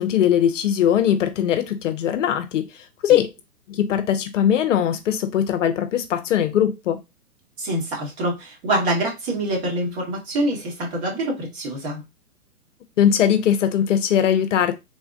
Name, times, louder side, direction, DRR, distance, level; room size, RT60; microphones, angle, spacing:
voice 1, 0.0-3.3 3.7-7.0 13.0-14.7, left 9 dB, 55° left, 0.5 m, -20 dB
voice 2, 7.6-12.0, right 1 dB, 45° right, 1.5 m, -25 dB
3.3 x 2.1 x 2.5 m
hypercardioid pair, 135°, 45 cm